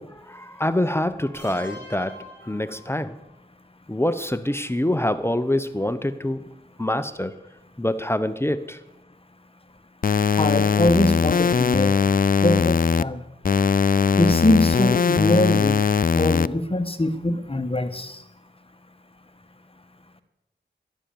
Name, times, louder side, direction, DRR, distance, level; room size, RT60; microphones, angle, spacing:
voice 1, 0.0-3.2 3.9-7.4 7.8-8.8, left 1 dB, 15° left, 13 dB, 0.9 m, -26 dB
sound 1, 1.3-3.3, left 1 dB, 85° right, 4.7 m, -43 dB
sound 2, 10.0-13.0 13.4-16.5, left 6 dB, 50° left, 0.5 m, -20 dB
voice 2, 10.4-11.9 12.4-13.2 14.2-15.8 16.1-18.2, left 1 dB, 30° left, 10 dB, 1.4 m, -22 dB
15.0 x 11.5 x 7.1 m, 0.89 s
cardioid pair, 50°, 19 cm